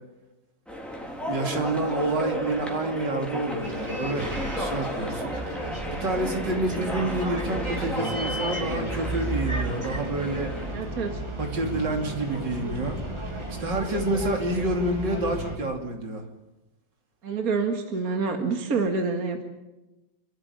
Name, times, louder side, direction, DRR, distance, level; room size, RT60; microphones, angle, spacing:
sound 1, 0.7-10.8, equal, ahead, 3.5 m, -34 dB
voice 1, 1.3-4.3 4.5-10.5 11.4-13.2 13.6-16.2, right 2 dB, 70° right, 3 dB, 3.5 m, -28 dB
Bus, 3.6-15.6, right 2 dB, 15° right, 2.8 m, -33 dB
voice 2, 10.7-11.2 17.2-19.4, right 4 dB, 50° right, 4 dB, 2.4 m, -27 dB
28.0 x 13.5 x 9.6 m, 1.0 s
omnidirectional pair, 2.0 m